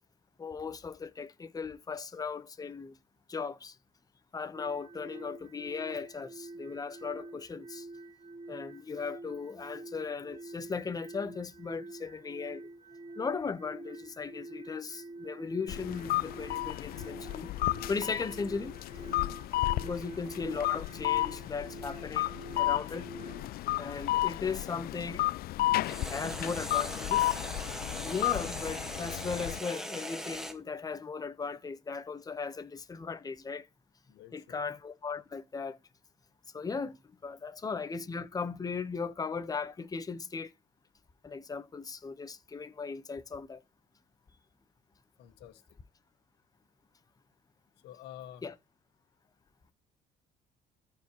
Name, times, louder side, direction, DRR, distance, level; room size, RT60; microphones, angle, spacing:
voice 1, 0.4-3.0 3.3-3.8 4.3-7.9 8.5-12.7 13.2-17.5 17.8-18.7 19.8-23.1 23.8-25.3 26.1-27.4 28.0-33.7 34.3-35.8 36.5-40.5 41.2-43.6 48.4-48.5, left 5 dB, 20° left, 1.0 m, -37 dB
sound 1, 4.6-23.5, right 2 dB, 40° right, 1.3 m, -47 dB
sound 2, 15.7-29.6, left 16 dB, 65° left, 0.4 m, -33 dB
sound 3, 19.5-24.7 25.8-30.6, equal, 5° right, 1.5 m, -41 dB
voice 2, 34.1-34.6 45.2-45.6 47.8-48.5, left 11 dB, 80° left, 1.6 m, -49 dB
14.5 x 4.8 x 3.0 m
cardioid pair, 110°, 17 cm